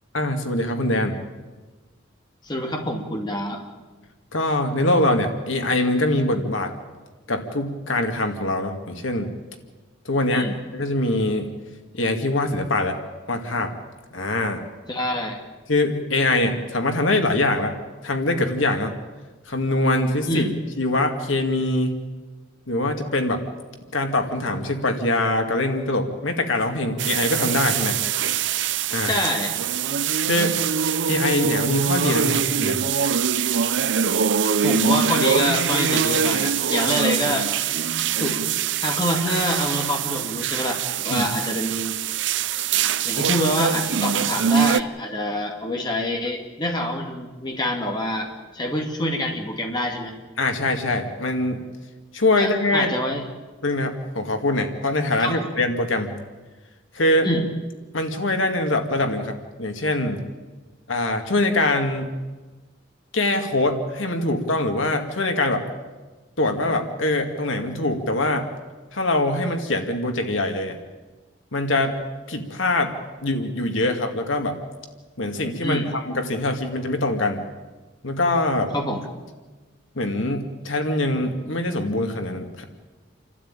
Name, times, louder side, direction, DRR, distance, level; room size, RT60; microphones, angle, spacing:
voice 1, 0.1-1.2 4.3-6.7 7.3-9.3 10.0-10.5 10.7-11.5 11.9-13.0 13.3-13.7 14.1-14.6 15.7-17.7 18.0-18.9 19.5-20.5 20.8-22.0 22.7-23.4 23.9-28.0 28.9-29.1 30.3-30.6 31.1-32.8 41.1-41.2 50.4-51.6 52.1-52.9 53.6-56.2 56.9-57.3 57.9-60.2 60.9-62.1 63.1-65.6 66.4-68.5 68.9-70.8 71.5-72.0 72.3-72.9 73.2-74.6 75.2-77.5 78.0-78.7 80.0-82.6, left 2 dB, 80° left, 5 dB, 2.2 m, -23 dB
voice 2, 2.4-3.6 10.3-10.5 14.9-15.4 20.3-20.5 29.0-29.5 34.6-37.5 38.2-38.4 38.8-42.0 43.0-48.3 48.5-50.1 52.4-53.2 55.2-55.4 57.2-57.4 75.6-75.9 78.7-79.1, left 1 dB, 20° left, 2 dB, 2.3 m, -26 dB
sound 1, 27.0-44.8, right 7 dB, 70° right, 0.6 m, -23 dB
28.5 x 12.5 x 8.9 m, 1.3 s
head